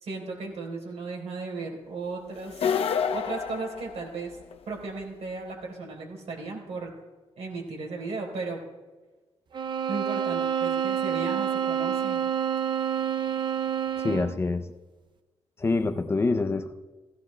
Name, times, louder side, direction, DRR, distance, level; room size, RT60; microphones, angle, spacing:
voice 1, 0.0-2.6 3.1-4.4 4.7-6.9 7.4-8.6 9.9-12.2, right 3 dB, 80° right, -1 dB, 3.9 m, -35 dB
sound 1, 2.5-4.5, left 7 dB, 65° left, 0.7 m, -28 dB
sound 2, 9.5-14.4, right 9 dB, 45° right, 0.5 m, -28 dB
voice 2, 14.0-14.7 15.6-16.7, left 3 dB, 25° left, 7 dB, 0.5 m, -26 dB
17.0 x 16.0 x 2.2 m, 1.3 s
wide cardioid pair, 170°, 11 cm